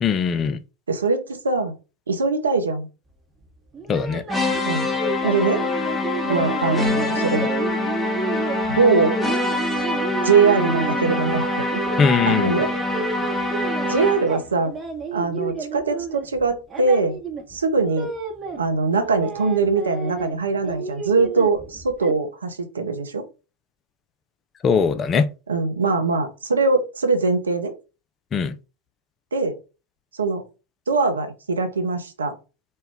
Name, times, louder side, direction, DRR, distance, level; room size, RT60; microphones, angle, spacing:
voice 1, 0.0-0.6 3.9-4.2 12.0-12.6 24.6-25.3 28.3-28.6, left 6 dB, 25° left, 0.4 m, -20 dB
voice 2, 0.9-1.8 2.1-2.9 4.6-4.9 5.2-5.6 6.2-7.5 8.7-9.2 10.2-11.7 12.3-12.7 13.9-14.7 15.1-17.2 17.5-18.1 18.6-23.2 25.5-27.7 29.3-29.6 30.1-30.4 30.9-32.3, right 4 dB, 75° right, 0.7 m, -22 dB
sound 1, 3.7-11.3 11.7-13.9 14.2-18.6 18.9-20.4 20.6-22.2, right 4 dB, 20° right, 0.9 m, -32 dB
sound 2, 4.3-14.4, left 2 dB, 5° left, 0.9 m, -24 dB
4.3 x 2.2 x 3.5 m
figure-of-eight pair, 85°, 0 cm